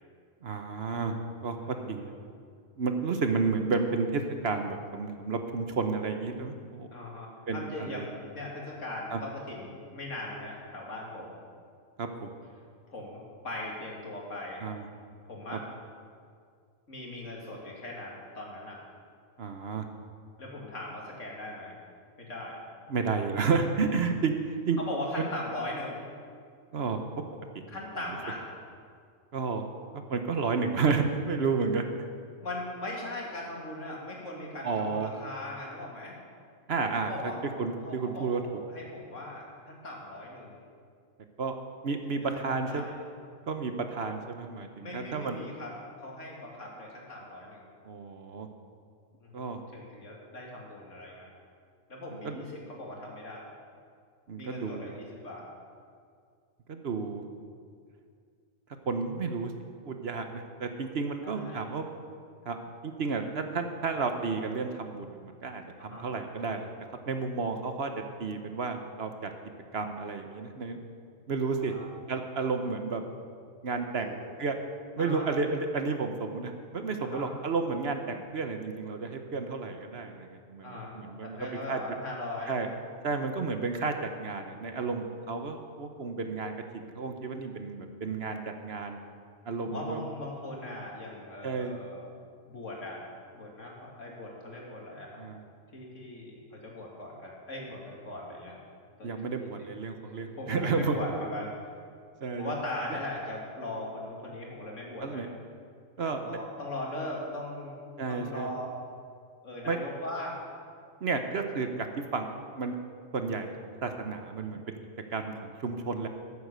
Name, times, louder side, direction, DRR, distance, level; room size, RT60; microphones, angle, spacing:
voice 1, 0.4-1.2 1.4-2.1 2.8-6.9 7.5-8.1 9.1-9.2 12.0-12.3 14.6-14.8 15.5-15.6 19.4-19.9 22.9-24.4 24.7-24.8 25.2-25.3 26.7-27.2 29.3-29.7 29.9-31.8 34.6-35.1 36.7-37.1 37.6-38.4 41.4-41.6 41.8-42.8 43.5-45.4 47.8-48.5 49.3-49.6 52.2-52.4 54.3-54.9 56.7-57.2 58.9-59.5 59.8-61.9 62.4-62.6 62.8-66.7 67.1-67.9 68.2-69.3 69.7-70.8 71.3-71.7 72.1-73.0 73.6-74.6 75.0-81.4 81.7-81.8 82.5-82.7 83.0-86.5 86.9-89.0 89.5-90.0 91.4-91.8 95.2-95.4 99.0-101.0 102.2-102.5 105.0-105.3 106.0-106.4 108.0-108.5 109.6-109.8 111.0-111.9 112.1-112.7 113.1-113.5 113.8-114.8 115.1-116.1, right 4 dB, 55° right, 6 dB, 1.1 m, -31 dB
voice 2, 1.6-2.0 3.0-3.2 6.9-11.3 12.9-14.6 15.2-15.6 16.9-18.8 20.4-21.8 22.2-22.6 24.8-26.0 27.7-28.5 32.4-36.2 37.1-37.4 37.8-40.6 42.1-42.2 42.6-43.0 44.8-45.7 46.0-47.7 49.2-51.3 51.9-53.5 54.4-55.5 61.2-61.7 65.8-66.1 71.7-71.8 74.0-74.1 75.0-75.3 77.0-77.3 80.6-82.6 89.6-92.1 92.5-93.0 93.3-95.2 95.7-98.6 99.0-99.7 100.0-101.5 102.4-105.2 106.0-107.8 108.1-108.7 109.4-110.4 114.4-114.5, left 1 dB, 70° left, -2 dB, 2.8 m, -39 dB
14.0 x 8.2 x 6.7 m, 2.2 s
omnidirectional pair, 1.3 m